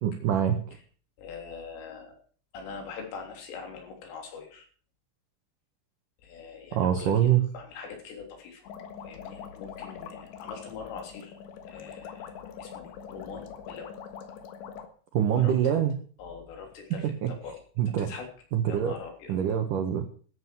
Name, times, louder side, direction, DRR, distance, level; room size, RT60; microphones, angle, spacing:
voice 1, 0.0-0.6 6.7-7.5 15.1-16.0 17.0-17.3 17.8-18.1 18.5-18.9 19.3-20.0, right 10 dB, 70° right, 5 dB, 2.1 m, -24 dB
voice 2, 1.2-2.1 2.5-4.6 6.2-8.6 9.0-11.4 11.7-12.3 12.6-13.9 15.3-15.8 16.2-17.6 18.0-18.3 18.7-19.4, left 5 dB, 90° left, 2 dB, 6.0 m, -42 dB
sound 1, 8.7-14.9, left 7 dB, 75° left, 3.6 m, -43 dB
13.0 x 7.8 x 7.7 m, 0.44 s
omnidirectional pair, 5.6 m